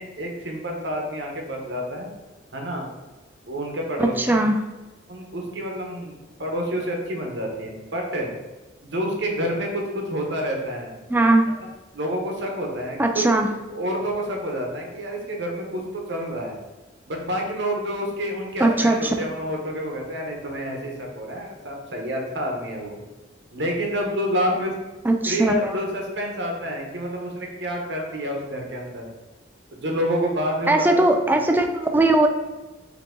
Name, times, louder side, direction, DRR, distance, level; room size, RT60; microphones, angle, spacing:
voice 1, 0.0-2.1 2.5-2.9 3.5-4.4 5.1-8.3 8.8-11.0 11.9-13.2 13.7-16.6 17.1-23.0 23.5-24.7 25.3-29.1 29.7-31.1, equal, 70° right, 1 dB, 1.0 m, -28 dB
voice 2, 4.0-4.6 11.1-11.4 13.0-13.5 18.6-19.1 25.0-25.8 30.7-32.3, right 2 dB, 10° right, 4 dB, 0.3 m, -19 dB
4.9 x 2.9 x 3.7 m, 1.1 s
head